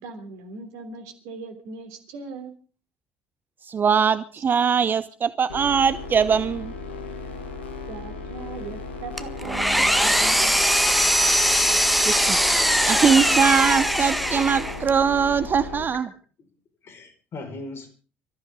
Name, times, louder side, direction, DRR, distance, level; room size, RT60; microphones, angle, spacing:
voice 1, 0.0-2.6 7.9-10.7, right 4 dB, 60° right, 3.3 m, -39 dB
voice 2, 3.7-6.7 12.0-12.6 12.9-16.1, right 6 dB, 35° right, 0.8 m, -21 dB
sound 1, 5.5-15.8, left 4 dB, 80° left, 2.0 m, -36 dB
Engine, 9.2-14.9, equal, ahead, 1.7 m, -21 dB
voice 3, 16.1-16.5 16.8-17.9, left 2 dB, 45° left, 5.1 m, -39 dB
25.0 x 14.5 x 3.8 m
figure-of-eight pair, 55°, 6 cm